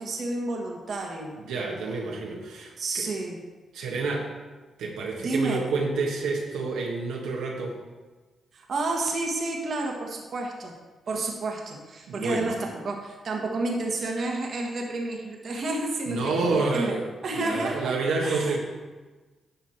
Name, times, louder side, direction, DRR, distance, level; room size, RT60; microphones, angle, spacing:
voice 1, 0.0-1.3 2.8-3.4 5.2-5.6 8.5-10.7 11.1-16.9 17.2-18.0 18.2-18.6, right 2 dB, 60° right, 0 dB, 1.7 m, -30 dB
voice 2, 1.4-3.0 3.7-4.3 4.8-7.8 12.1-12.5 16.1-17.0 17.3-18.6, right 3 dB, 85° right, -2 dB, 1.7 m, -28 dB
11.5 x 6.0 x 4.4 m, 1.3 s
supercardioid pair, 50°, 0 cm